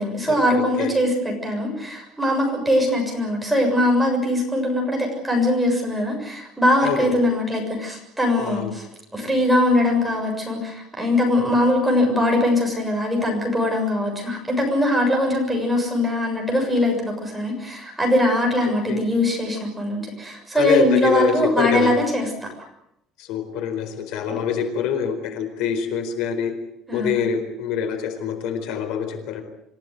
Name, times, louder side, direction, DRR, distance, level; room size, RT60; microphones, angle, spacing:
voice 1, 0.0-8.9 9.1-22.5 24.3-24.4 26.9-27.2, left 1 dB, 5° right, 0 dB, 7.0 m, -21 dB
voice 2, 6.8-7.2 8.4-8.7 18.9-19.0 20.6-21.9 23.2-26.5 26.9-29.4, left 8 dB, 75° left, 7 dB, 4.3 m, -25 dB
27.0 x 15.5 x 9.5 m, 0.81 s
cardioid pair, 170°, 0 cm